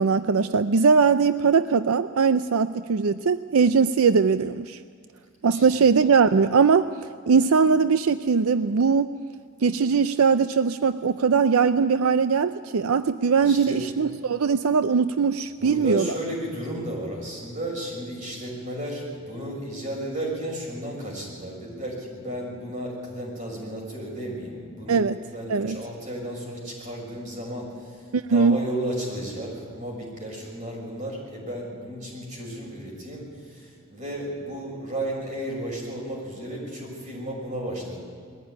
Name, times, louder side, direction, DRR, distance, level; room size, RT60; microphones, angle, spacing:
voice 1, 0.0-4.8 5.4-6.9 7.3-9.1 9.6-16.1 24.9-25.2 25.5-25.8 28.1-28.6, right 5 dB, 85° right, 12 dB, 0.5 m, -20 dB
voice 2, 13.4-13.9 15.6-38.0, right 1 dB, 35° right, -2 dB, 6.4 m, -33 dB
21.0 x 15.0 x 9.6 m, 2.1 s
head